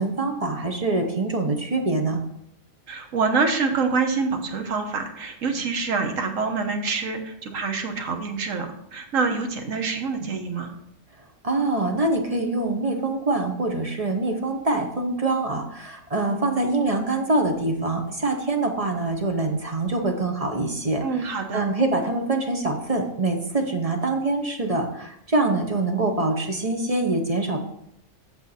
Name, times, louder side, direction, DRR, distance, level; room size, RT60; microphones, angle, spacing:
voice 1, 0.0-2.2 11.4-27.6, right 2 dB, 30° right, 3 dB, 0.9 m, -24 dB
voice 2, 2.9-10.7 16.2-16.5 21.0-21.7, right 4 dB, 75° right, 5 dB, 1.5 m, -26 dB
8.2 x 6.7 x 4.1 m, 0.76 s
omnidirectional pair, 1.4 m